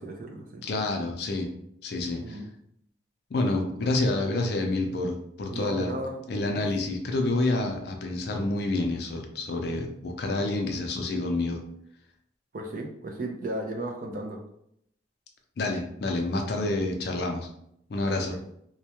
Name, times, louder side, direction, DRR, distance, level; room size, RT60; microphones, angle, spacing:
voice 1, 0.0-0.6 2.2-2.5 3.8-3.9 5.5-6.1 6.5-6.7 12.5-14.4 18.1-18.4, right 1 dB, 45° right, 2 dB, 0.3 m, -35 dB
voice 2, 0.6-1.5 1.8-2.4 3.3-5.9 6.3-11.6 15.6-17.5 17.9-18.4, left 2 dB, 55° left, 3 dB, 0.4 m, -28 dB
2.2 x 2.1 x 2.8 m, 0.73 s
head